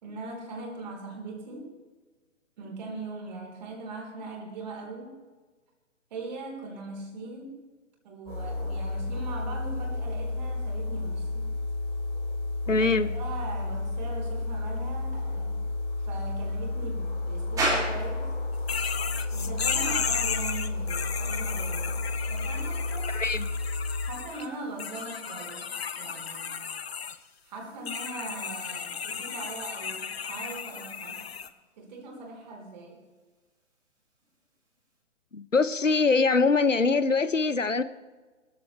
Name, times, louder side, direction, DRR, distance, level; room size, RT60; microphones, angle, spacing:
voice 1, 0.0-1.7 2.6-5.2 6.1-7.6 8.0-11.4 12.7-15.6 16.0-18.3 19.3-22.0 22.3-23.2 24.0-26.6 27.4-31.2 31.8-33.0, right 3 dB, 35° right, 0 dB, 4.1 m, -40 dB
sound 1, 8.3-24.1, left 2 dB, 15° left, 4.1 m, -32 dB
voice 2, 12.7-13.1 23.1-23.5 35.3-37.8, left 4 dB, 85° left, 14 dB, 0.9 m, -23 dB
sound 2, 17.6-35.0, right 1 dB, 10° right, 2.7 m, -41 dB
sound 3, 18.7-24.5 24.8-27.2 27.8-31.5, left 6 dB, 55° left, 0.9 m, -34 dB
21.5 x 14.0 x 3.3 m, 1.3 s
figure-of-eight pair, 135°, 37 cm